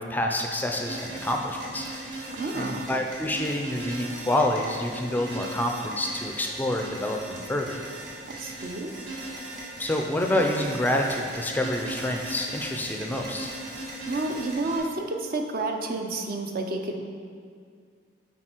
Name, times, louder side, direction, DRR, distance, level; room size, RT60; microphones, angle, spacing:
voice 1, 0.0-2.3 2.5-7.8 9.8-13.5, left 1 dB, 10° left, 2 dB, 0.4 m, -28 dB
sound 1, 0.7-14.8, right 1 dB, 65° right, 1.8 m, -38 dB
voice 2, 2.3-2.8 8.3-8.9 14.1-17.0, right 2 dB, 50° right, 3 dB, 0.6 m, -30 dB
9.0 x 4.1 x 4.5 m, 2.2 s
head